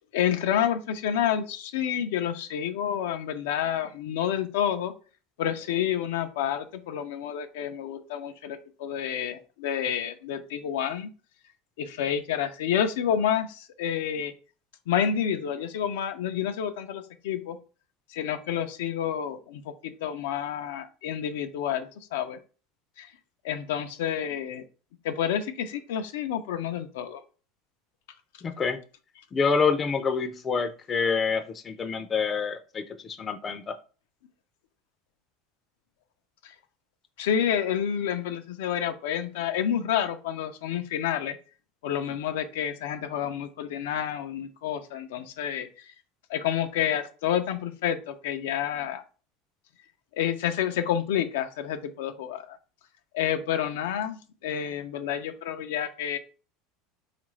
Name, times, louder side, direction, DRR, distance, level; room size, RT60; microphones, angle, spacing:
voice 1, 0.1-4.9 5.4-11.1 11.8-14.3 14.9-17.6 18.1-22.4 23.0-23.1 23.4-24.6 25.0-27.2 36.4-36.5 37.2-41.4 41.8-45.9 46.3-49.0 50.1-52.6 53.1-56.2, left 9 dB, 85° left, 7 dB, 0.4 m, -29 dB
voice 2, 28.4-28.8 29.3-33.8, left 5 dB, 25° left, 7 dB, 0.4 m, -27 dB
3.6 x 2.4 x 3.1 m, 0.36 s
supercardioid pair, 125°, 0 cm